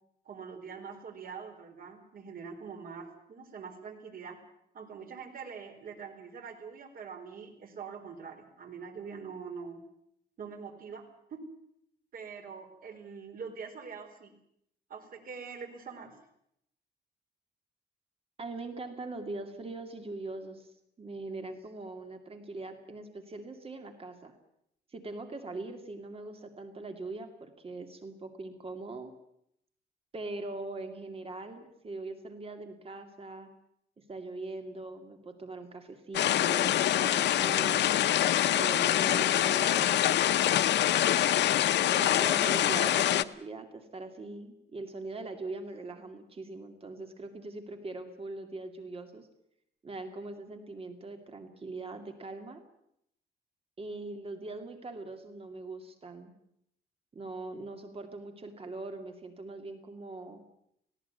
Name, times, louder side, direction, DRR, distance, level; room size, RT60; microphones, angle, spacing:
voice 1, 0.2-4.4 4.7-9.8 10.4-11.0 11.3-11.4 12.1-14.3 14.9-16.1, right 6 dB, 55° right, 5 dB, 4.3 m, -44 dB
voice 2, 18.4-20.7 21.0-24.3 24.9-29.1 30.1-33.5 34.1-38.1 38.5-40.3 41.9-49.3 49.8-52.6 53.8-56.3 57.1-60.4, right 2 dB, 35° right, 6 dB, 2.5 m, -41 dB
sound 1, 36.1-43.2, left 12 dB, 90° left, 0.8 m, -25 dB
19.0 x 17.0 x 9.6 m, 0.75 s
cardioid pair, 140°, 17 cm